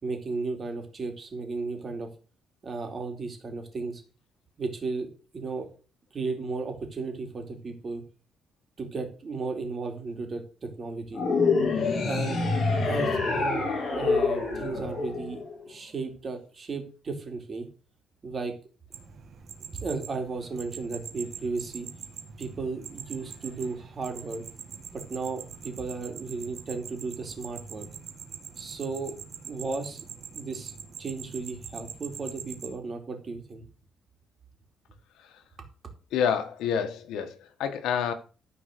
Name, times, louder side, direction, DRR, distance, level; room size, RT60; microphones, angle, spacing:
voice 1, 0.0-2.1 2.6-4.0 4.6-5.7 6.1-8.0 8.8-11.2 12.0-12.4 12.8-17.7 18.2-18.5 19.7-21.9 22.4-24.4 24.9-27.9 28.6-29.1 29.4-30.0 30.3-30.7 31.0-33.6, right 4 dB, 30° right, 3.0 m, -34 dB
sound 1, 11.1-15.6, left 4 dB, 40° left, 5.1 m, -26 dB
sound 2, 18.9-32.7, right 6 dB, 50° right, 2.1 m, -43 dB
voice 2, 36.1-38.1, left 7 dB, 90° left, 1.6 m, -28 dB
13.5 x 4.9 x 6.8 m
cardioid pair, 140°, 0 cm